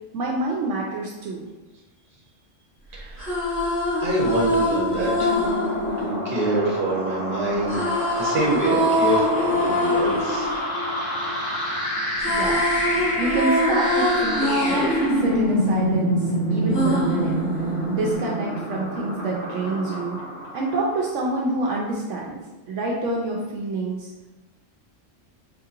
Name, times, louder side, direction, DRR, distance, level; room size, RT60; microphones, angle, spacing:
voice 1, 0.1-1.5 12.3-12.6 13.2-14.9 15.2-17.4 17.9-20.2 20.5-22.4 22.7-24.1, right 2 dB, 75° right, -3 dB, 0.9 m, -27 dB
voice 2, 2.9-3.4 4.0-5.3 6.0-7.8 8.2-10.6, right 1 dB, 45° right, -3 dB, 1.0 m, -26 dB
sound 1, 3.0-7.1 7.7-11.7 12.0-16.2 16.7-18.2, left 1 dB, 10° left, 0.8 m, -25 dB
sound 2, 4.9-21.2, equal, 70° left, 2.0 m, -27 dB
4.4 x 2.8 x 2.4 m, 1.1 s
omnidirectional pair, 1.3 m